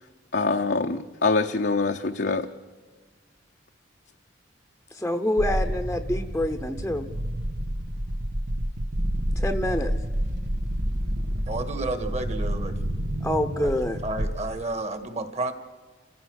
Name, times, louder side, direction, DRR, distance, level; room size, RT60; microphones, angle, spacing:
voice 1, 0.3-2.5, left 3 dB, 55° left, 3 dB, 0.8 m, -24 dB
voice 2, 4.9-7.1 9.4-9.9 13.2-14.0, left 1 dB, 5° left, 6 dB, 0.9 m, -26 dB
sound 1, 5.4-14.7, equal, 75° right, 1.7 m, -29 dB
voice 3, 11.5-12.8 13.6-13.7 14.0-15.5, right 2 dB, 35° right, 9 dB, 1.7 m, -31 dB
30.0 x 15.5 x 6.4 m, 1.5 s
head